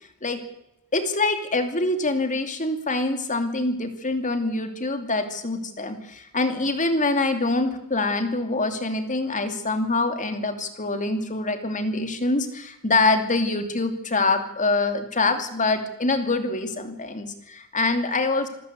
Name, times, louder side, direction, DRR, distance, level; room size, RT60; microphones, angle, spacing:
voice 1, 0.9-18.5, left 3 dB, 35° left, 7 dB, 2.7 m, -25 dB
27.0 x 13.5 x 8.1 m, 0.85 s
head